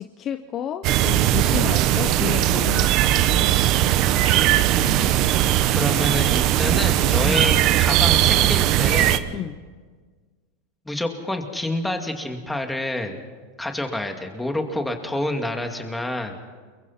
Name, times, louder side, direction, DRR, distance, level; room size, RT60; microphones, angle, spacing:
voice 1, 0.0-3.7 7.2-7.4 9.3-9.6, left 10 dB, 35° left, 9 dB, 0.8 m, -31 dB
sound 1, 0.8-9.2, right 13 dB, 45° right, 1.0 m, -19 dB
voice 2, 4.7-9.3 10.9-13.2 13.6-16.4, left 1 dB, 5° left, 4 dB, 2.4 m, -28 dB
29.5 x 22.0 x 4.3 m, 1.5 s
supercardioid pair, 135°, 0 cm